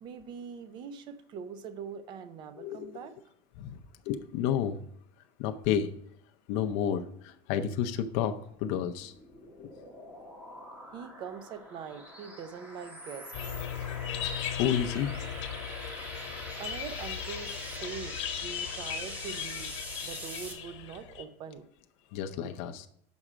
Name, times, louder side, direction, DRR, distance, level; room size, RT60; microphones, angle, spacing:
voice 1, 0.0-3.1 10.9-13.3 16.6-19.7 20.0-21.7, right 6 dB, 30° right, 12 dB, 0.6 m, -43 dB
voice 2, 2.6-3.0 3.6-3.8 4.1-4.8 5.4-5.9 6.5-9.1 9.6-9.7 14.6-15.1 22.1-22.9, left 9 dB, 50° left, 6 dB, 0.5 m, -31 dB
sound 1, 8.9-20.5, equal, 10° right, 1.1 m, -44 dB
sound 2, 13.3-21.2, left 9 dB, 85° left, 1.2 m, -37 dB
6.1 x 5.5 x 4.9 m, 0.70 s
supercardioid pair, 170°, 15 cm